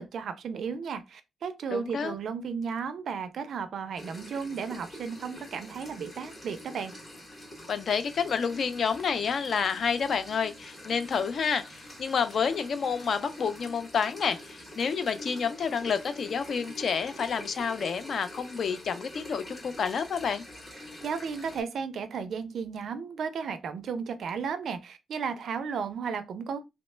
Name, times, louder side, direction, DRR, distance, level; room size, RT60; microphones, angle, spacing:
voice 1, 0.0-6.9 20.8-26.6, right 6 dB, 55° right, 0.4 m, -34 dB
voice 2, 1.7-2.1 7.7-20.4, left 6 dB, 45° left, 0.3 m, -29 dB
sound 1, 4.0-21.6, left 1 dB, 20° left, 0.8 m, -46 dB
2.9 x 2.1 x 3.2 m
wide cardioid pair, 180°, 0 cm